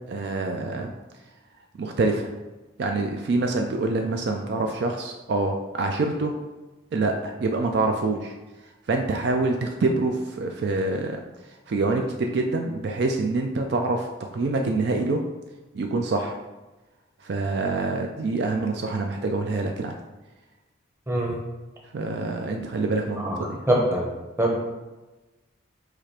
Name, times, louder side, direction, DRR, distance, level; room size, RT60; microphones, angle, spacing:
voice 1, 0.1-0.9 1.7-2.3 2.8-6.3 6.9-8.4 8.9-11.2 11.5-15.2 15.7-16.4 17.2-20.0 21.9-23.6, right 3 dB, 55° right, 3 dB, 0.3 m, -26 dB
voice 2, 23.7-24.1 24.4-24.6, right 1 dB, 10° right, -2 dB, 0.7 m, -23 dB
4.9 x 2.4 x 4.2 m, 1.1 s
head